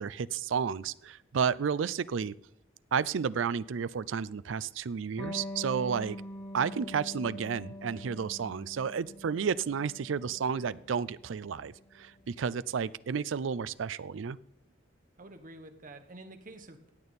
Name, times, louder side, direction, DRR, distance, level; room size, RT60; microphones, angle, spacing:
voice 1, 0.0-2.3 2.9-6.2 6.5-14.4, right 6 dB, 75° right, 18 dB, 0.4 m, -32 dB
Electric guitar, 5.2-12.3, left 1 dB, 35° left, 5.7 m, -44 dB
voice 2, 15.2-16.9, right 2 dB, 45° right, 7 dB, 1.3 m, -48 dB
16.0 x 8.8 x 4.2 m, 0.83 s
head